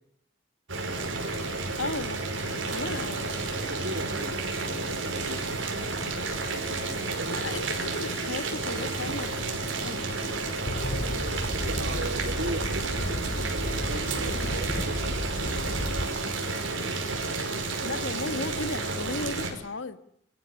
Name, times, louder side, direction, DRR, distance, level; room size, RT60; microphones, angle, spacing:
Boiling, 0.7-19.5, right 3 dB, 85° right, 5.5 m, -31 dB
voice 1, 1.8-2.3 2.7-3.3 7.3-9.3 9.8-10.1 17.8-20.0, left 3 dB, 75° left, 11 dB, 1.5 m, -35 dB
voice 2, 3.7-4.6 4.8-5.6 6.5-7.4 7.7-7.9 11.6-16.3 16.6-16.7, right 2 dB, 65° right, 9 dB, 2.2 m, -39 dB
sound 1, 10.7-16.1, left 1 dB, 55° left, 5.5 m, -33 dB
26.5 x 14.5 x 9.9 m, 0.71 s
head